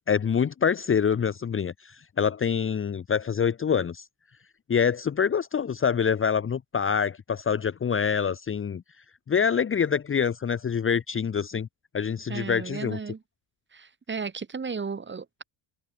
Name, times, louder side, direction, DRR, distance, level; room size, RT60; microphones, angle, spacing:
voice 1, 0.1-4.1 4.7-8.8 9.3-11.7 11.9-13.0, left 7 dB, 25° left, 1.3 m, -25 dB
voice 2, 12.3-13.2 13.7-15.4, right 5 dB, 20° right, 4.8 m, -34 dB
open air
cardioid pair, 140°, 49 cm